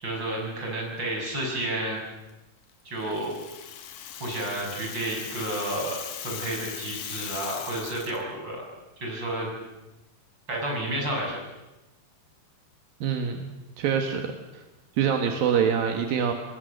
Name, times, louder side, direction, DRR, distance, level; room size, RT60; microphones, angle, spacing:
voice 1, 0.0-2.0 2.9-3.3 4.2-8.6 9.0-9.5 10.5-11.4, right 1 dB, 30° right, -1 dB, 7.1 m, -31 dB
Rattle (instrument), 3.0-8.2, left 9 dB, 90° left, 3.4 m, -39 dB
voice 2, 13.0-13.5 13.8-14.6 15.0-16.3, right 7 dB, 80° right, 4 dB, 3.3 m, -25 dB
27.0 x 20.0 x 6.7 m, 1.0 s
omnidirectional pair, 4.1 m